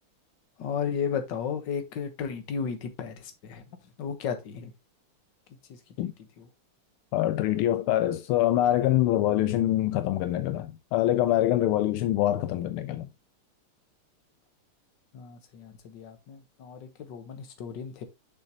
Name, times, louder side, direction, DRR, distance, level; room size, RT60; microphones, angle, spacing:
voice 1, 0.6-3.6 4.0-4.7 5.7-5.8 6.4-6.5 15.1-18.0, left 6 dB, 60° left, 1.8 m, -34 dB
voice 2, 7.1-13.1, left 13 dB, 80° left, 1.5 m, -25 dB
6.5 x 6.3 x 2.9 m
omnidirectional pair, 2.4 m